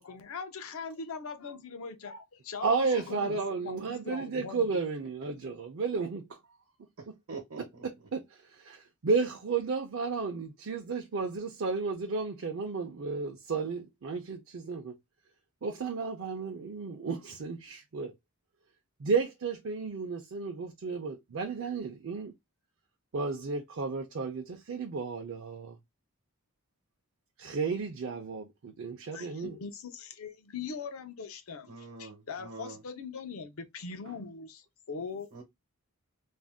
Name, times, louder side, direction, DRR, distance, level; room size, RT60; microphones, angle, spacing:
voice 1, 0.0-4.7 29.1-35.3, left 5 dB, 75° left, 0.5 m, -41 dB
voice 2, 2.6-6.4 8.1-14.9 15.6-18.1 19.0-22.3 23.1-25.8 27.4-29.6, right 4 dB, 60° right, 0.5 m, -33 dB
voice 3, 7.0-7.7 31.7-32.8 35.3-35.4, right 3 dB, 75° right, 0.9 m, -44 dB
2.5 x 2.1 x 3.4 m
head